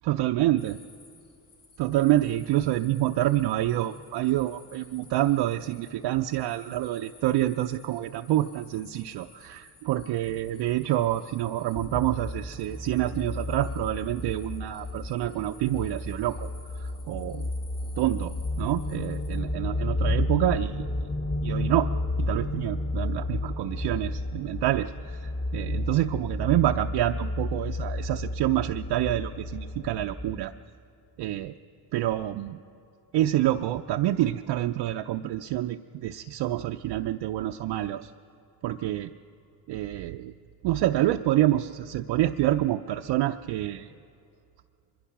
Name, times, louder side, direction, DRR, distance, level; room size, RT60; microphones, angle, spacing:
voice 1, 0.0-0.8 1.8-16.5 16.8-17.5 18.0-21.1 21.4-21.9 22.2-30.5 31.2-31.6 31.9-32.6 33.1-38.1 38.6-39.1 39.7-40.3 40.6-43.9, right 14 dB, 70° right, 4 dB, 0.6 m, -27 dB
sound 1, 0.6-19.4, left 4 dB, 65° left, 4.6 m, -56 dB
sound 2, 11.7-30.4, left 2 dB, 35° left, 2.9 m, -32 dB
23.5 x 22.0 x 5.9 m, 2.4 s
cardioid pair, 75°, 44 cm